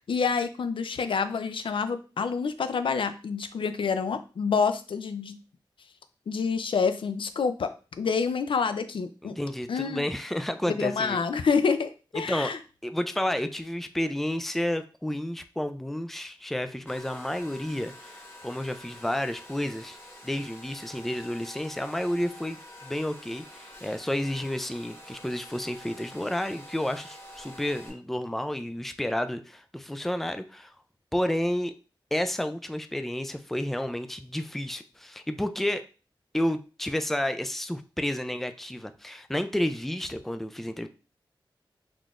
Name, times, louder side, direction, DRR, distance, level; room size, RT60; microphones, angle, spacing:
voice 1, 0.0-5.4 6.3-7.7 8.0-9.3 9.7-10.1 10.7-12.6, left 5 dB, 80° left, 11 dB, 0.4 m, -27 dB
voice 2, 9.2-11.2 12.2-12.5 12.8-20.0 20.2-30.7 31.1-31.7 32.1-35.8 36.3-40.9, left 1 dB, 5° left, 9 dB, 0.3 m, -31 dB
Domestic sounds home sounds, 16.9-27.9, left 1 dB, 30° left, 1.0 m, -47 dB
3.9 x 3.1 x 2.4 m, 0.34 s
wide cardioid pair, 70°, 9 cm